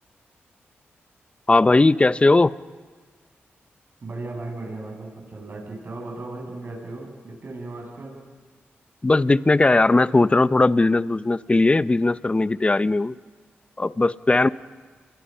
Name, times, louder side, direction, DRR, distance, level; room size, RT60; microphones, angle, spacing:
voice 1, 1.5-2.5 9.0-13.1 13.8-14.5, left 2 dB, 25° left, 16 dB, 0.7 m, -18 dB
voice 2, 4.0-8.1, right 2 dB, 55° right, 0 dB, 8.0 m, -36 dB
28.5 x 22.5 x 5.6 m, 1.4 s
cardioid pair, 55°, 4 cm